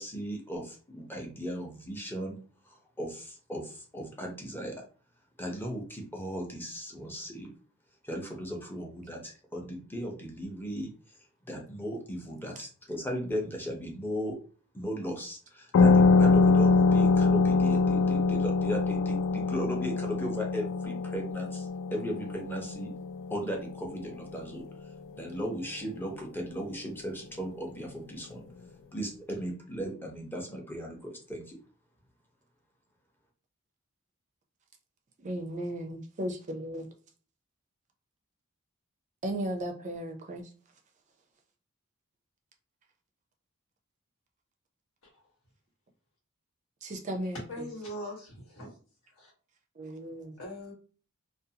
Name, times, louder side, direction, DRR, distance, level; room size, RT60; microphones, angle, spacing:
voice 1, 0.0-2.4 2.7-4.8 5.4-7.5 8.0-10.9 11.4-14.4 14.7-22.9 23.3-24.6 25.1-28.4 28.9-31.6, equal, 10° left, 0 dB, 0.6 m, -37 dB
sound 1, 15.7-24.9, left 4 dB, 60° left, 0.3 m, -24 dB
voice 2, 35.2-36.8 39.2-40.4 46.8-47.4 49.8-50.4, right 1 dB, 35° right, 3 dB, 0.4 m, -35 dB
voice 3, 47.5-48.8 49.0-49.3 50.4-50.7, left 1 dB, 85° left, -3 dB, 1.3 m, -41 dB
2.5 x 2.3 x 2.7 m, 0.39 s
head